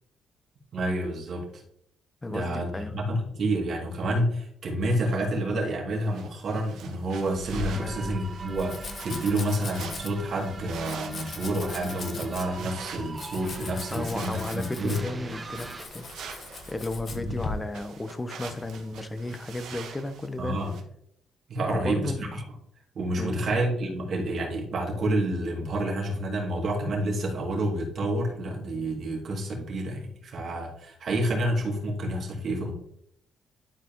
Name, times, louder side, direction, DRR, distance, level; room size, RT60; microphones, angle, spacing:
voice 1, 0.7-1.6 2.3-15.0 17.2-17.3 20.4-20.7 21.5-22.4 22.9-32.7, right 1 dB, 60° right, -1 dB, 2.6 m, -29 dB
voice 2, 2.2-3.1 7.7-8.2 13.6-16.1 16.7-20.6 21.7-22.5 23.2-23.4, left 2 dB, 20° left, 10 dB, 1.0 m, -34 dB
sound 1, 5.9-20.8, right 6 dB, 80° right, 1.4 m, -45 dB
Domestic sounds home sounds, 7.3-17.5, left 3 dB, 50° left, 1.4 m, -40 dB
sound 2, 7.7-15.9, right 3 dB, 30° right, 1.2 m, -42 dB
11.5 x 5.0 x 3.1 m, 0.70 s
cardioid pair, 90°, 0 cm